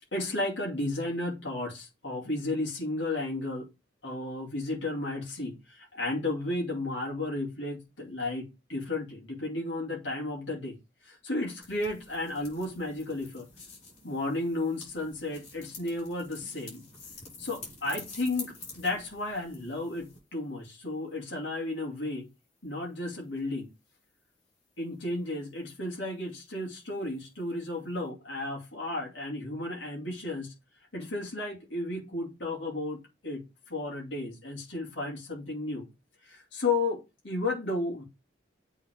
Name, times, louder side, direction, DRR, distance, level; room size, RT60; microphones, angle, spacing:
voice 1, 0.1-3.7 4.0-10.8 11.0-13.5 14.0-16.9 17.4-22.3 22.6-23.7 24.8-30.5 30.9-33.4 33.7-35.9 36.2-38.0, left 2 dB, 70° left, 2.4 m, -33 dB
sound 1, 11.6-20.2, left 4 dB, 35° left, 5.0 m, -48 dB
8.4 x 4.0 x 3.6 m
head